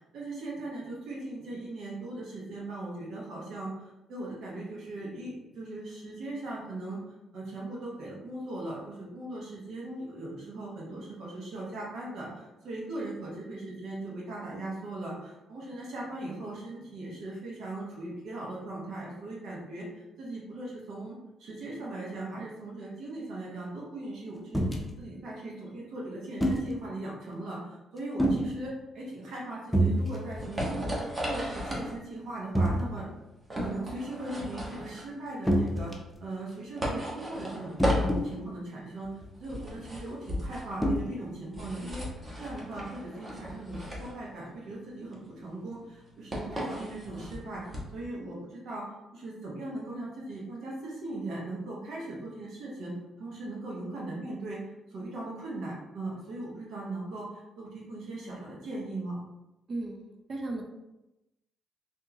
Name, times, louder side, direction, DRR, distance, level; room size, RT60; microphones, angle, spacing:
voice 1, 0.0-7.0 7.3-19.9 20.2-24.6 25.0-30.9 31.3-33.1 33.6-35.9 36.2-39.1 39.4-42.0 42.4-47.6 47.9-48.9 49.1-52.9 53.2-54.6 54.9-59.2, right 2 dB, 75° right, -5 dB, 1.1 m, -39 dB
sound 1, 24.5-24.8 26.4-26.7 28.2-28.5 29.7-30.0 30.3-30.6 31.0-31.1 32.5-32.8 35.5-36.1 37.8-38.3 39.2-39.3 40.8-41.0, equal, 5° left, 0.6 m, -25 dB
sound 2, 29.7-48.1, equal, 25° right, 1.0 m, -36 dB
voice 2, 59.7-60.6, right 2 dB, 45° right, 2 dB, 0.5 m, -36 dB
3.6 x 2.7 x 2.8 m, 0.96 s
cardioid pair, 90°, 0 cm